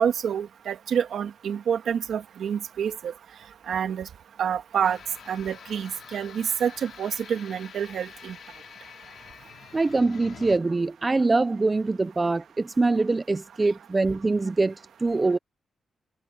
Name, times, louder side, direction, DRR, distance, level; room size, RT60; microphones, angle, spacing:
voice 1, 0.0-3.1 3.7-4.1 4.4-5.0 5.3-8.4, right 8 dB, 70° right, 1.9 m, -27 dB
sound 1, 4.8-10.6, left 7 dB, 60° left, 4.2 m, -46 dB
voice 2, 9.7-15.4, right 3 dB, 20° right, 0.5 m, -24 dB
wide cardioid pair, 150°, 0 cm